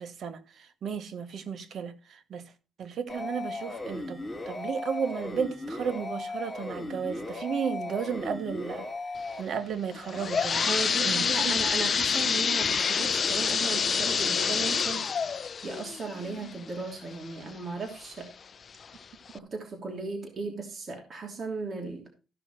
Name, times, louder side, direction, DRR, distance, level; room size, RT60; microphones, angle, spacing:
voice 1, 0.0-2.4 2.8-8.9 9.4-10.7 11.0-11.5, right 7 dB, 60° right, 1.5 m, -34 dB
sound 1, 3.1-9.4, left 2 dB, 10° left, 3.0 m, -37 dB
sound 2, 9.9-17.5 18.0-18.1 18.8-18.9 19.3-19.4, left 6 dB, 45° left, 0.5 m, -27 dB
voice 2, 10.7-15.2 15.6-18.3 19.3-22.1, right 4 dB, 40° right, 3.0 m, -36 dB
14.5 x 6.2 x 4.5 m
cardioid pair, 90°, 0 cm